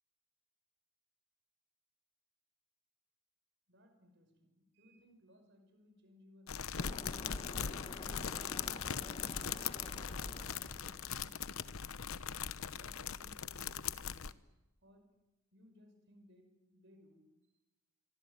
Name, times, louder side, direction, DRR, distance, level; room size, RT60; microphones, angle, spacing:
voice 1, 3.7-6.9 12.2-14.5 14.8-15.2 15.5-17.6, left 1 dB, 50° right, 7 dB, 5.7 m, -64 dB
sound 1, 6.5-14.3, left 7 dB, 70° left, 0.9 m, -40 dB
sound 2, 6.8-11.7, left 2 dB, 25° left, 1.1 m, -49 dB
25.0 x 23.5 x 9.2 m, 1.0 s
head